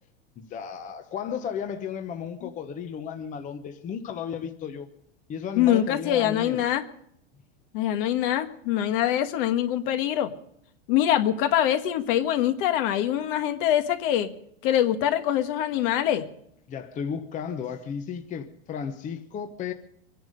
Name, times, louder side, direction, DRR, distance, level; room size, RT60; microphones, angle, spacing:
voice 1, 0.4-4.9 5.3-6.7 16.7-19.7, left 7 dB, 25° left, 0.9 m, -34 dB
voice 2, 5.5-6.8 7.7-10.3 10.9-14.3 14.6-16.2, left 11 dB, 55° left, 1.5 m, -24 dB
23.5 x 10.5 x 5.2 m
supercardioid pair, 140°, 32 cm